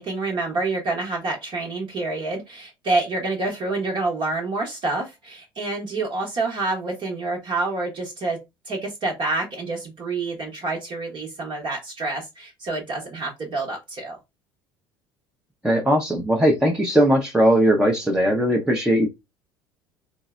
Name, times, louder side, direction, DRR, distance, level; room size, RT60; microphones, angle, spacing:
voice 1, 0.0-8.4 8.7-14.2, right 3 dB, 40° right, 1.0 m, -27 dB
voice 2, 15.6-19.1, equal, 5° right, 0.7 m, -19 dB
3.8 x 2.0 x 2.4 m
hypercardioid pair, 65°, 12 cm